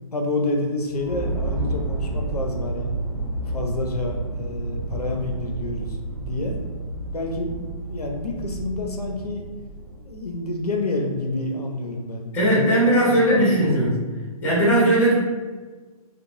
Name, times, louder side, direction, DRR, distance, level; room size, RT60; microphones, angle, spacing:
voice 1, 0.1-2.9 3.4-6.6 7.1-9.4 10.0-13.9, left 2 dB, 80° left, 2 dB, 0.5 m, -29 dB
sound 1, 0.9-10.6, right 2 dB, 25° right, 0.8 m, -30 dB
voice 2, 12.3-14.0 14.4-15.1, right 1 dB, 10° left, -6 dB, 0.8 m, -18 dB
3.0 x 2.1 x 2.5 m, 1.4 s
figure-of-eight pair, 130°, 20 cm